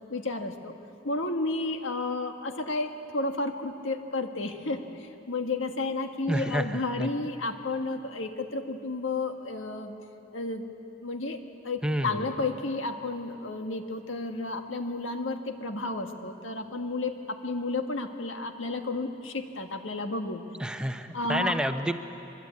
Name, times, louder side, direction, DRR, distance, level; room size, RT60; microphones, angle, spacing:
voice 1, 0.1-0.7 1.0-9.9 10.3-10.7 11.0-20.4 21.1-21.5, left 3 dB, 85° left, 5 dB, 1.7 m, -32 dB
voice 2, 6.3-7.1 11.8-12.3 20.6-21.9, right 1 dB, 5° right, 7 dB, 0.8 m, -29 dB
23.5 x 22.5 x 8.5 m, 2.9 s
head